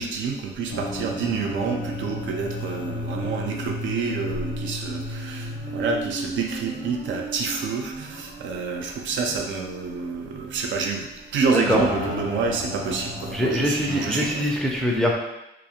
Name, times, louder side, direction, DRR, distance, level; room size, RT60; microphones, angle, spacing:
voice 1, 0.0-14.6, right 4 dB, 70° right, 2 dB, 0.4 m, -28 dB
sound 1, 0.7-7.2 7.5-7.6 8.2-8.3 11.7-14.2, left 1 dB, 85° left, 0.7 m, -33 dB
sound 2, 2.0-13.5 13.9-14.0, right 4 dB, 35° right, 0.6 m, -39 dB
voice 2, 13.3-15.1, equal, 5° left, -1 dB, 0.4 m, -23 dB
2.4 x 2.0 x 2.8 m, 0.91 s
cardioid pair, 90°, 20 cm